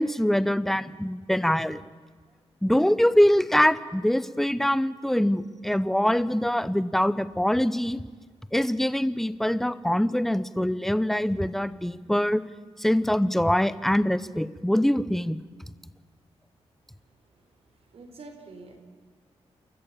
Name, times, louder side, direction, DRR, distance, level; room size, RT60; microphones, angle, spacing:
voice 1, 0.0-1.8 2.6-8.0 8.5-12.4 12.8-15.4, equal, 5° left, 15 dB, 0.7 m, -24 dB
voice 2, 16.9-18.8, right 3 dB, 65° right, 5 dB, 4.1 m, -48 dB
28.5 x 14.0 x 8.8 m, 1.5 s
wide cardioid pair, 140°, 11 cm